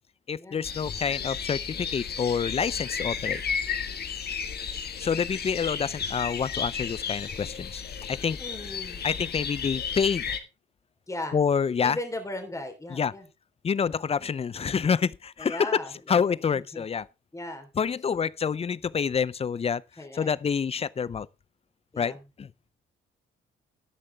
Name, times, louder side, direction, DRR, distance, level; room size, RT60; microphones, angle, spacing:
voice 1, 0.3-3.4 5.0-7.8 8.1-8.4 9.0-10.4 11.3-12.0 12.9-13.1 13.6-15.7 16.1-17.1 17.8-19.8 20.1-21.3 22.0-22.5, left 6 dB, 30° left, 0.5 m, -27 dB
sound 1, 0.6-10.4, left 6 dB, 55° left, 1.7 m, -33 dB
voice 2, 8.4-9.1 11.1-11.4 11.8-13.3 15.4-16.8 17.3-17.7 20.0-20.3 21.9-22.2, left 1 dB, 15° left, 3.5 m, -37 dB
13.5 x 9.8 x 3.4 m
cardioid pair, 90°, 20 cm